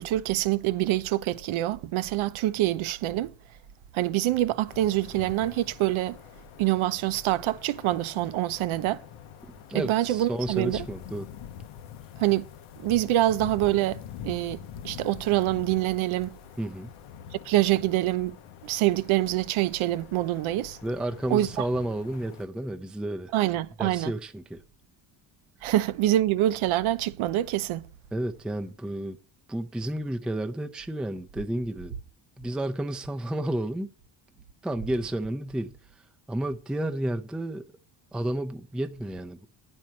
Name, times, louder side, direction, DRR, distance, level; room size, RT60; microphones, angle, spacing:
voice 1, 0.0-3.3 3.9-6.2 6.6-9.0 9.7-10.9 12.2-12.4 12.8-16.3 17.4-18.4 18.6-20.8 21.3-21.7 23.3-24.1 25.6-27.9, right 14 dB, 75° right, 0.7 m, -25 dB
sound 1, 4.7-22.5, left 9 dB, 80° left, 0.8 m, -45 dB
voice 2, 9.7-11.3 16.6-16.9 20.8-23.3 23.8-24.6 28.1-29.2 29.5-31.9 32.4-33.9 34.6-35.7 36.3-37.7 38.1-39.5, right 1 dB, ahead, 0.5 m, -31 dB
9.6 x 4.5 x 7.5 m
cardioid pair, 100°, 49 cm